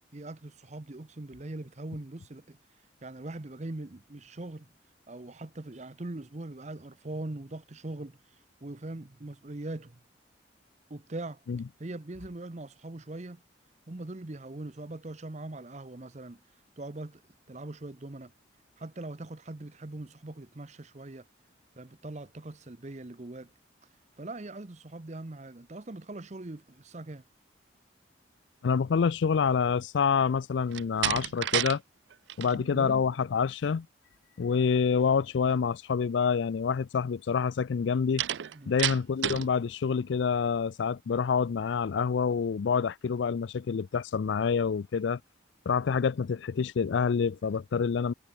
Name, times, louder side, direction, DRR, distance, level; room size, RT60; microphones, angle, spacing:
voice 1, 0.1-2.6 3.0-4.7 5.1-8.2 8.6-10.0 10.9-11.4 11.8-13.4 13.9-16.4 16.8-17.2 17.5-18.3 18.8-21.3 21.8-23.5 24.2-27.2 32.4-33.0 38.5-38.9, right 2 dB, 40° right, 0.8 m, -41 dB
voice 2, 28.6-31.8 32.4-33.9 34.4-38.2 38.7-45.2 45.7-48.1, left 6 dB, 75° left, 0.4 m, -27 dB
Slam, 30.7-31.8 32.1-32.6 38.2-39.5, right 12 dB, 70° right, 0.4 m, -30 dB
head